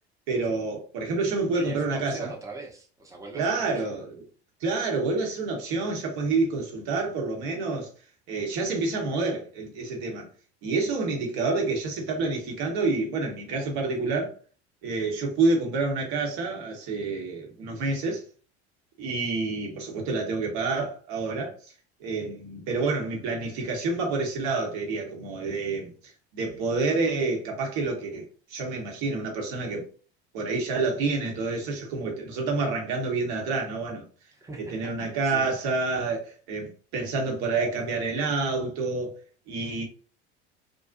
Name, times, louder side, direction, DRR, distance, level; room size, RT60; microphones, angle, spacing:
voice 1, 0.3-2.3 3.3-4.2 4.6-7.9 8.3-10.3 10.6-14.4 14.8-18.2 19.0-21.5 22.0-25.9 26.3-28.2 28.5-29.9 30.3-34.1 34.6-39.2 39.5-39.8, right 3 dB, 55° right, 1.1 m, -28 dB
voice 2, 1.5-3.9 34.3-35.5, right 2 dB, 10° right, 0.7 m, -41 dB
2.6 x 2.3 x 2.5 m
figure-of-eight pair, 70°, 33 cm